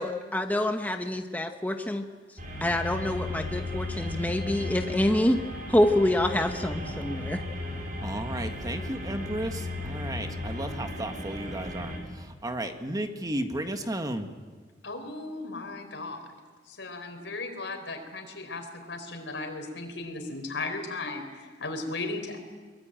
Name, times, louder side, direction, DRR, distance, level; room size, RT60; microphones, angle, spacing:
voice 1, 0.0-2.1 2.6-5.4 5.7-7.4, left 1 dB, 10° left, 5 dB, 1.0 m, -26 dB
sound 1, 2.4-12.0, left 2 dB, 50° right, 5.4 m, -35 dB
voice 2, 8.0-14.3, right 1 dB, 20° right, 6 dB, 1.5 m, -34 dB
voice 3, 14.8-16.2 16.7-22.4, left 3 dB, 80° left, 6 dB, 4.4 m, -36 dB
23.0 x 22.5 x 9.0 m, 1.4 s
head